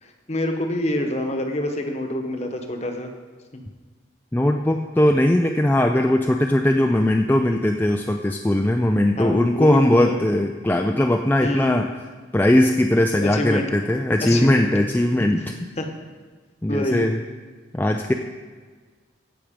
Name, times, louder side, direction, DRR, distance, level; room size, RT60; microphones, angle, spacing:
voice 1, 0.0-3.1 9.2-10.2 11.4-11.8 13.1-13.7 14.2-14.7 15.2-15.3 15.8-15.9 16.7-17.1, left 1 dB, 35° left, 4 dB, 1.1 m, -26 dB
voice 2, 4.3-11.9 12.3-15.5 16.6-17.2 17.7-18.1, left 1 dB, 10° left, 3 dB, 0.4 m, -19 dB
16.0 x 6.1 x 5.1 m, 1.4 s
head